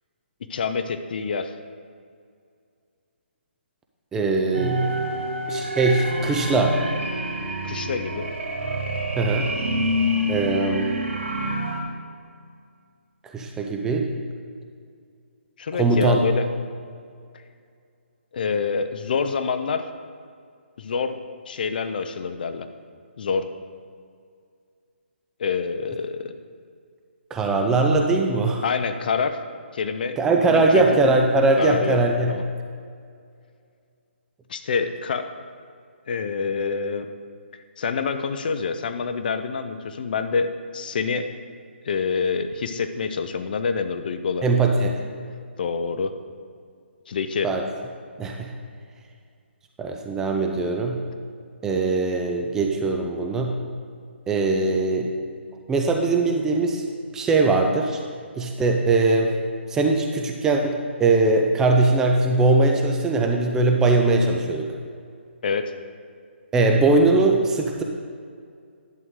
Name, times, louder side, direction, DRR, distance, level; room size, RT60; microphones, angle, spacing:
voice 1, 0.5-1.5 7.6-8.3 15.6-16.4 18.3-19.9 20.8-21.2 21.5-22.7 23.2-23.5 25.4-26.3 28.6-29.4 29.7-30.2 30.5-30.8 31.6-32.0 32.3-32.4 34.5-35.3 36.1-37.1 37.8-41.3 41.9-44.5 45.6-46.1 47.1-47.5 65.4-65.7, left 5 dB, 45° left, 9 dB, 0.6 m, -26 dB
voice 2, 4.1-4.8 5.5-6.8 9.2-9.5 10.3-10.9 13.3-14.1 15.7-16.2 27.3-28.6 30.2-32.3 44.4-45.0 47.4-47.6 48.2-48.5 49.8-51.0 51.6-53.5 54.3-55.1 55.7-56.8 57.1-58.0 58.4-59.3 59.7-64.7 66.5-67.8, right 3 dB, 10° right, 2 dB, 0.5 m, -21 dB
sound 1, 4.5-11.8, equal, 90° right, 2.1 m, -27 dB
11.0 x 7.8 x 3.7 m, 2.2 s
hypercardioid pair, 160°, 7 cm